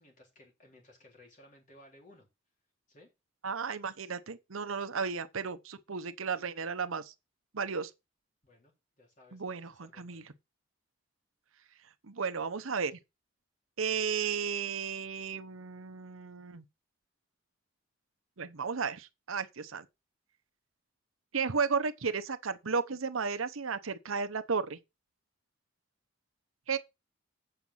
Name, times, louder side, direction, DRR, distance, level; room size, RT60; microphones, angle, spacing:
voice 1, 0.0-2.3 2.9-3.1 3.8-4.0 8.4-10.3, left 1 dB, 40° left, 3.6 m, -59 dB
voice 2, 3.4-7.1 7.5-7.9 9.3-10.2 12.0-13.0 13.8-16.6 18.4-19.8 21.3-24.8 26.7-26.8, right 5 dB, 85° right, 0.9 m, -34 dB
7.9 x 5.9 x 5.6 m
head